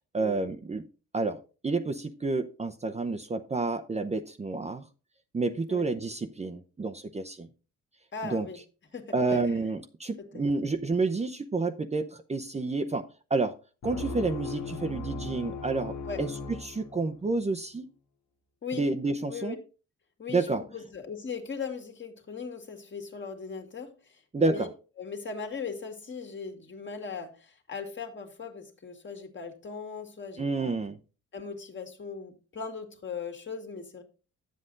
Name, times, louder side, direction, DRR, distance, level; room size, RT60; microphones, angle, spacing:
voice 1, 0.1-0.9 1.1-4.9 5.3-7.5 8.2-8.5 9.1-13.5 13.8-16.3 16.6-17.9 18.7-19.6 20.3-20.6 24.3-24.7 30.4-31.0, right 3 dB, 20° right, 5 dB, 0.7 m, -29 dB
voice 2, 8.1-8.6 8.9-9.4 10.3-10.4 16.0-16.2 18.6-18.8 19.3-19.6 20.2-24.7 25.0-30.7 31.3-34.0, left 5 dB, 40° left, 5 dB, 2.0 m, -39 dB
sound 1, 13.8-17.4, left 4 dB, 70° left, 1.8 m, -38 dB
9.4 x 7.7 x 3.9 m, 0.34 s
cardioid pair, 90°, 30 cm